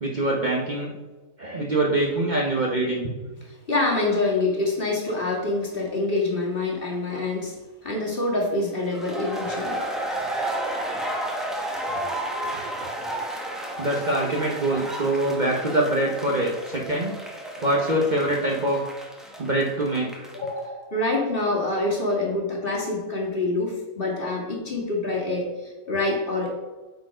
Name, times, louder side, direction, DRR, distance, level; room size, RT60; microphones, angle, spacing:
voice 1, 0.0-0.9 1.4-3.1 13.8-17.1 17.6-18.8 19.4-20.2, right 1 dB, 35° right, -2 dB, 1.0 m, -24 dB
voice 2, 3.4-7.6 7.8-9.8 20.3-26.5, left 2 dB, 40° left, -2 dB, 2.0 m, -26 dB
sound 1, 8.8-20.5, right 1 dB, ahead, 0.9 m, -32 dB
8.2 x 4.5 x 4.9 m, 1.2 s
omnidirectional pair, 1.5 m